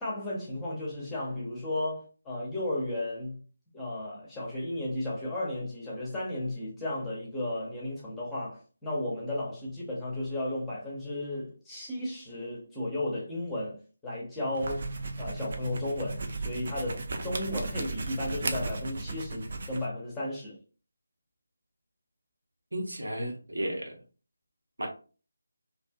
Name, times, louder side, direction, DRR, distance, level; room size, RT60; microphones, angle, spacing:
voice 1, 0.0-3.4 3.7-14.9 15.2-20.6, left 1 dB, 5° left, 0.8 m, -34 dB
sound 1, 14.5-19.9, right 2 dB, 45° right, 0.4 m, -35 dB
voice 2, 22.7-23.9 24.8-24.9, equal, 70° right, 0.9 m, -33 dB
2.5 x 2.4 x 2.2 m
figure-of-eight pair, 155°, 0 cm